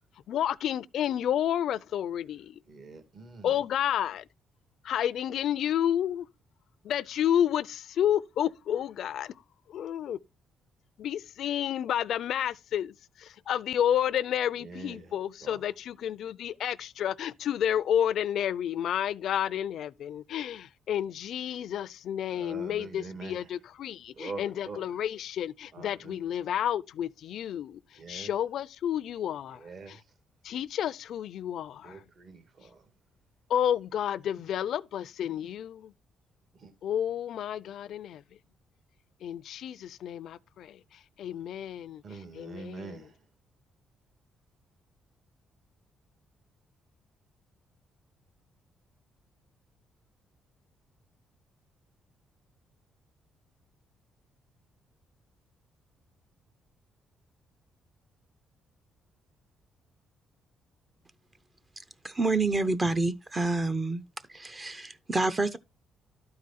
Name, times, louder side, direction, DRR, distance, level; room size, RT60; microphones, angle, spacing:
voice 1, 0.3-2.6 3.4-4.2 4.8-6.3 6.8-9.3 9.7-10.2 11.0-12.9 13.2-27.8 28.1-29.6 30.4-32.0 33.5-35.9 36.8-38.2 39.2-40.8 41.2-42.0 42.4-42.8, left 10 dB, 70° left, 0.4 m, -30 dB
voice 2, 2.7-3.6 14.6-15.7 22.3-23.6 24.1-25.0 25.7-26.2 28.0-28.3 29.5-30.1 31.8-32.9 36.5-36.7 42.0-43.2, right 4 dB, 55° right, 2.0 m, -44 dB
voice 3, 62.0-64.0 64.3-65.6, right 3 dB, 25° right, 0.7 m, -28 dB
12.0 x 4.8 x 4.1 m
cardioid pair, 90°, 0 cm